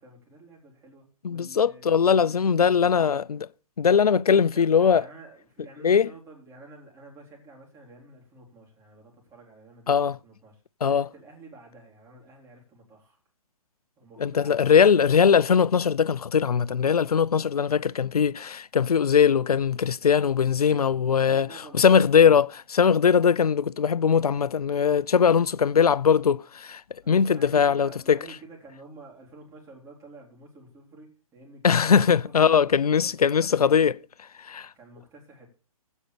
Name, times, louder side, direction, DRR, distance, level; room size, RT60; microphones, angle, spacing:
voice 1, 0.0-3.3 4.3-13.2 14.0-15.2 20.6-21.9 25.2-25.5 27.0-33.8 34.7-35.5, right 2 dB, 15° right, 4.0 m, -49 dB
voice 2, 1.2-3.4 3.8-5.0 5.8-6.1 9.9-10.2 10.8-11.1 14.2-21.5 21.8-22.5 22.7-26.8 27.1-28.2 31.6-33.9 34.4-34.7, left 7 dB, 90° left, 0.5 m, -20 dB
15.5 x 5.4 x 6.8 m
hypercardioid pair, 140°, 19 cm